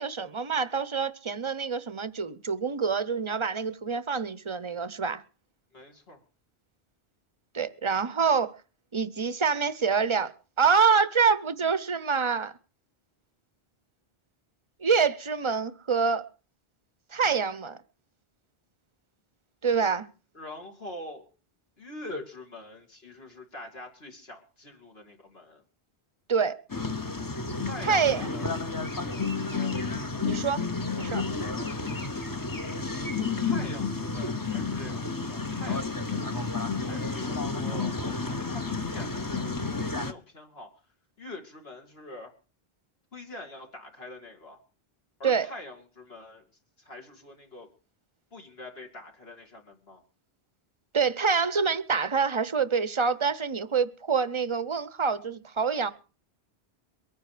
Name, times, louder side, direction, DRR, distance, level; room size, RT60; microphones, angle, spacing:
voice 1, 0.0-5.2 7.5-8.5 8.9-10.3 10.6-12.5 14.8-16.2 17.1-17.8 19.6-20.1 26.3-26.6 27.8-28.3 30.2-30.6 31.0-31.2 45.2-45.5 50.9-55.9, right 5 dB, 30° right, 0.7 m, -26 dB
voice 2, 5.7-6.2 20.3-21.2 21.8-25.6 27.7-28.6 28.9-29.8 33.1-40.7 41.2-42.3 43.1-44.6 45.2-46.4 46.8-47.7 48.3-50.0, left 2 dB, 70° left, 3.0 m, -44 dB
sound 1, 26.7-40.1, left 4 dB, 20° left, 0.9 m, -31 dB
22.5 x 9.6 x 5.0 m
omnidirectional pair, 1.1 m